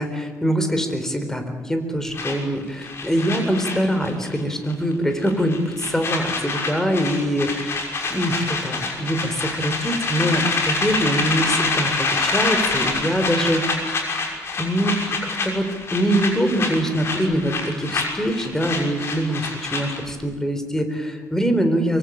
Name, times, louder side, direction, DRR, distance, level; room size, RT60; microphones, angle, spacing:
voice 1, 0.0-7.8 8.1-14.0 14.6-22.0, equal, 10° left, 7 dB, 4.1 m, -23 dB
sound 1, 2.1-4.4 4.7-4.9 5.2-20.1, left 3 dB, 45° left, 6.1 m, -26 dB
24.0 x 23.5 x 8.7 m, 1.4 s
cardioid pair, 130°, 6 cm